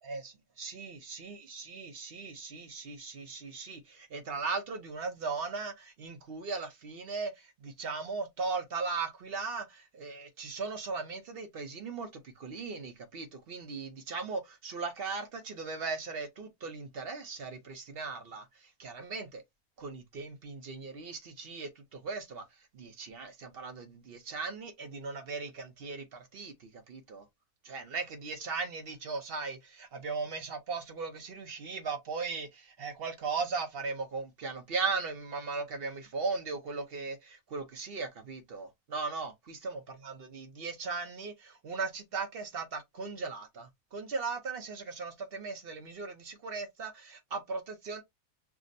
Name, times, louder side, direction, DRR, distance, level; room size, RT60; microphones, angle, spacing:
voice 1, 0.0-19.4 19.8-22.5 22.7-27.3 27.6-48.0, right 4 dB, 50° right, 0.7 m, -38 dB
5.8 x 2.0 x 2.5 m
omnidirectional pair, 1.6 m